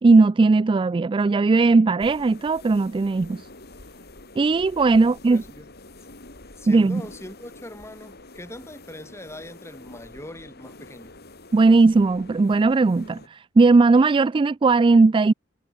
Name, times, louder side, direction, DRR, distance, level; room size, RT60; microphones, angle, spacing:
voice 1, 0.0-3.4 4.4-5.4 6.7-7.0 11.5-15.3, right 3 dB, 25° right, 0.3 m, -18 dB
sound 1, 2.0-13.3, left 2 dB, 55° left, 4.4 m, -46 dB
voice 2, 5.0-5.7 6.6-11.2, left 1 dB, 15° left, 8.0 m, -41 dB
head